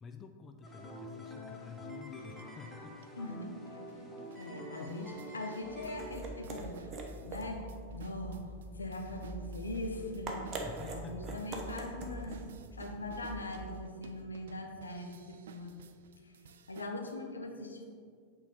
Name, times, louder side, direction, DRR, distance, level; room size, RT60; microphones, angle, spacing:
voice 1, 0.0-3.1 4.2-4.4 4.8-5.3 10.6-11.6, left 5 dB, 25° left, 6 dB, 0.4 m, -49 dB
sound 1, 0.6-6.1, equal, 5° left, 1.0 m, -47 dB
sound 2, 2.4-2.5 3.0-3.1 3.7-17.1, right 6 dB, 60° right, 0.3 m, -56 dB
voice 2, 3.2-3.8 4.4-7.0 7.2-8.5 8.7-10.6 10.9-15.8 16.2-16.4 16.7-17.8, left 1 dB, 75° left, 3 dB, 0.8 m, -41 dB
sound 3, 5.6-13.8, right 2 dB, 30° right, 0.9 m, -44 dB
8.2 x 3.8 x 4.3 m, 2.1 s
figure-of-eight pair, 90°, 0 cm